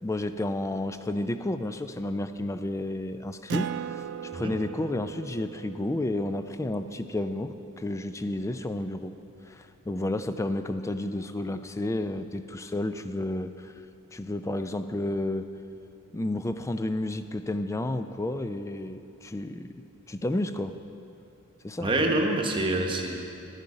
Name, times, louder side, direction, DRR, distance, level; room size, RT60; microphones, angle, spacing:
voice 1, 0.0-4.0 4.3-9.2 9.5-13.7 14.1-15.5 16.1-19.7 20.1-20.8 21.6-21.9, left 1 dB, 15° left, 10 dB, 0.4 m, -31 dB
Acoustic guitar, 3.5-8.5, right 7 dB, 55° right, 0.4 m, -39 dB
voice 2, 21.8-23.2, right 2 dB, 25° right, 1 dB, 1.0 m, -26 dB
11.5 x 11.0 x 4.9 m, 2.7 s
head